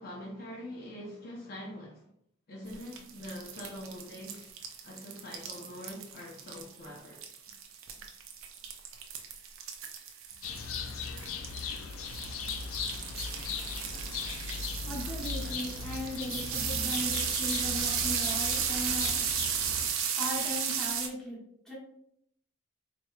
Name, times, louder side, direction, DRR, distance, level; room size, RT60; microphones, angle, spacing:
voice 1, 0.0-2.1 2.5-4.5 4.8-7.2, left 1 dB, 45° left, 0.7 m, -44 dB
sound 1, 2.7-21.1, right 7 dB, 80° right, 0.5 m, -35 dB
sound 2, 10.4-19.9, left 5 dB, 85° left, 0.4 m, -38 dB
voice 2, 14.8-19.1 20.1-21.4 21.6-21.7, equal, 5° left, 1.1 m, -38 dB
4.2 x 2.9 x 2.3 m
head